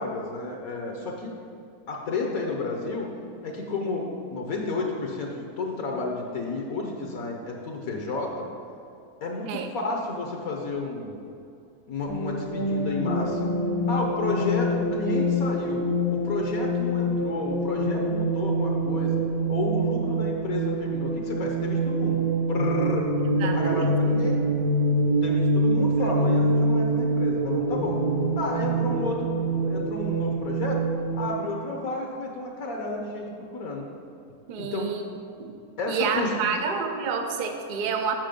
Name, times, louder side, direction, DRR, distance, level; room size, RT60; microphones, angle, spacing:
voice 1, 0.0-1.3 1.9-3.1 3.4-8.5 9.2-11.2 11.9-13.5 13.9-15.8 16.1-19.2 19.5-22.2 22.5-23.1 23.4-24.4 25.1-28.0 28.4-30.8 31.2-33.8 34.6-35.0 35.8-36.4, left 3 dB, 65° left, 1 dB, 1.2 m, -31 dB
sound 1, 12.1-31.3, right 1 dB, 80° left, 1.9 m, -25 dB
voice 2, 23.4-23.9 34.5-35.0 35.4-35.6 35.9-38.1, right 5 dB, 55° right, 4 dB, 0.5 m, -28 dB
7.5 x 6.1 x 5.1 m, 2.6 s
omnidirectional pair, 1.8 m